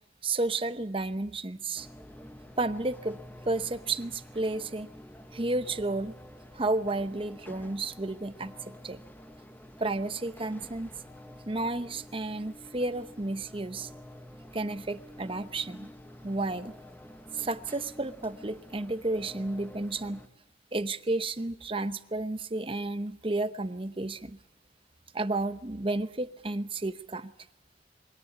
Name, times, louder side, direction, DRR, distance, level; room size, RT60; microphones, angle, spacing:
voice 1, 0.2-1.9 2.6-3.2 3.4-4.9 5.3-6.1 6.5-9.0 9.8-10.9 11.5-13.9 14.5-15.9 16.2-16.7 17.3-20.2 20.7-24.4 25.1-27.3, right 2 dB, 30° right, 13 dB, 0.8 m, -32 dB
sound 1, 1.7-20.3, equal, 10° left, 1.1 m, -49 dB
22.5 x 17.5 x 9.6 m, 0.84 s
head